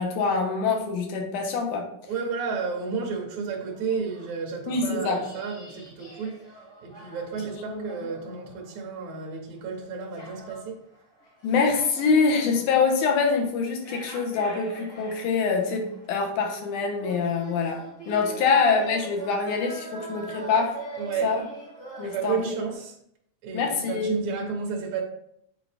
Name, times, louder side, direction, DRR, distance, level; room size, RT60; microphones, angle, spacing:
voice 1, 0.0-1.9 4.7-5.2 7.5-7.8 11.4-20.8 21.2-21.4 22.0-22.5 23.5-24.2, left 5 dB, 85° left, 2.5 m, -25 dB
voice 2, 2.1-6.5 6.8-10.8 12.4-12.6 18.3-18.5 21.0-21.4 22.0-23.0 23.4-25.0, right 5 dB, 75° right, 2.3 m, -32 dB
sound 1, 2.9-3.2 3.4-9.2 9.6-22.7, right 2 dB, 30° left, 2.5 m, -43 dB
8.2 x 4.0 x 3.4 m
omnidirectional pair, 3.5 m